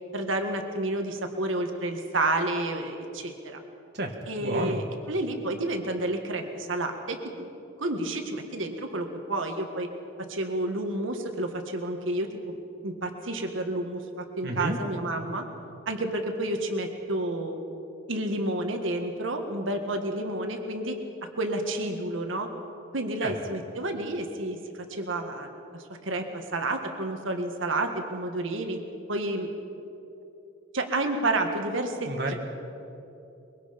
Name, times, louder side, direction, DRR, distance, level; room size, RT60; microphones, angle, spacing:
voice 1, 0.1-3.6 4.3-7.5 7.8-9.9 10.3-15.4 15.9-17.6 18.1-22.5 22.9-28.8 29.1-29.5 30.7-32.1, right 2 dB, 80° right, 4 dB, 1.7 m, -30 dB
voice 2, 3.9-4.8 14.4-14.8 23.2-23.3 32.0-32.3, right 1 dB, 55° right, 2 dB, 1.6 m, -31 dB
23.5 x 22.0 x 5.2 m, 2.9 s
head